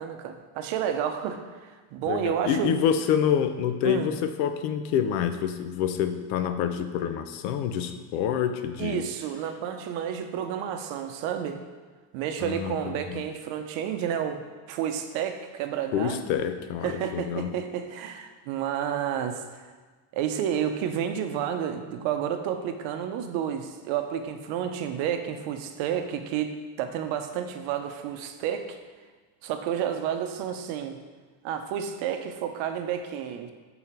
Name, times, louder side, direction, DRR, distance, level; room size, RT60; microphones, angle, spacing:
voice 1, 0.0-2.7 3.8-4.1 8.8-11.6 12.1-16.2 16.8-19.7 20.1-28.8 29.4-31.0 31.4-33.5, right 9 dB, 70° right, 7 dB, 0.8 m, -30 dB
voice 2, 2.1-9.0 12.4-13.2 15.9-17.5, left 8 dB, 85° left, 9 dB, 0.7 m, -27 dB
5.7 x 3.9 x 4.4 m, 1.4 s
supercardioid pair, 115°, 48 cm